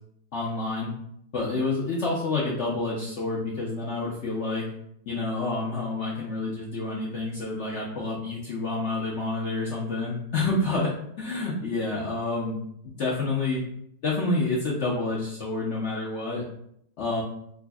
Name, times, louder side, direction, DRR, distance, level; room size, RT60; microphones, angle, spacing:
voice 1, 0.3-0.9 1.3-4.6 5.1-10.9 11.2-12.6 12.8-13.6 14.0-16.4 17.0-17.2, left 3 dB, 65° left, -5 dB, 0.7 m, -28 dB
4.9 x 2.5 x 2.3 m, 0.72 s
omnidirectional pair, 1.9 m